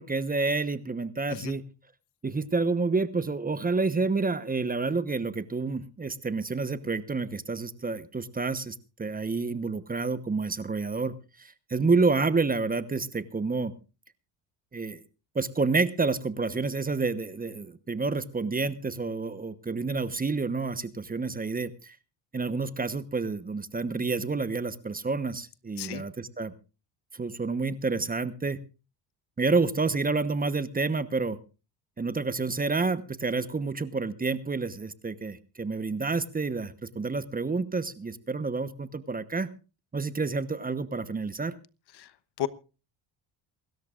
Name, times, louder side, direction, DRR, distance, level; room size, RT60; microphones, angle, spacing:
voice 1, 0.0-1.7 2.2-13.7 14.7-15.0 15.3-21.9 22.3-26.5 27.1-28.6 29.4-31.4 32.0-39.5 39.9-41.5, right 4 dB, 20° right, 13 dB, 1.1 m, -29 dB
voice 2, 1.3-1.6 25.8-26.0 42.0-42.1 42.4-42.5, left 11 dB, 55° left, 15 dB, 1.2 m, -32 dB
27.5 x 13.5 x 2.5 m, 0.32 s
cardioid pair, 95°, 47 cm